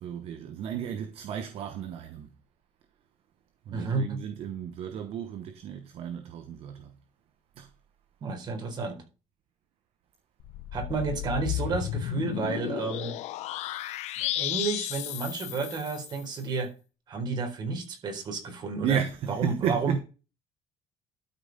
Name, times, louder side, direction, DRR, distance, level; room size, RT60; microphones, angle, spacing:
voice 1, 0.0-2.3 3.7-6.9 7.6-7.7 18.8-20.0, right 8 dB, 55° right, 1.1 m, -33 dB
voice 2, 3.7-4.2 8.2-9.0 10.7-13.2 14.2-16.7 17.1-19.0 19.3-20.0, right 4 dB, 40° right, 4.1 m, -31 dB
sound 1, 10.4-16.2, left 14 dB, 75° left, 0.8 m, -33 dB
12.5 x 5.5 x 5.2 m
cardioid pair, 170°, 12 cm